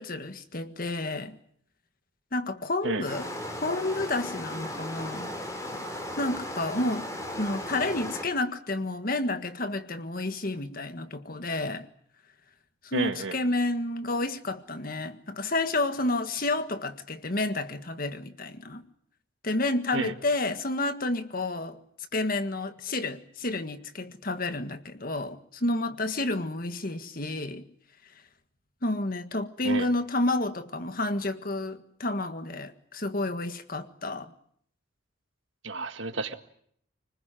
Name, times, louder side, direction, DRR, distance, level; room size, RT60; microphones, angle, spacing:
voice 1, 0.0-1.4 2.3-3.3 3.6-5.4 6.2-7.1 7.4-11.8 12.8-18.8 19.4-21.8 22.1-27.7 28.8-34.3, left 2 dB, 50° left, 9 dB, 1.7 m, -30 dB
sound 1, 3.0-8.2, left 1 dB, 15° left, 4.3 m, -36 dB
voice 2, 12.9-13.4 19.9-20.1 29.6-29.9 35.6-36.4, right 3 dB, 80° right, 8 dB, 1.9 m, -30 dB
25.5 x 20.0 x 9.2 m, 0.68 s
head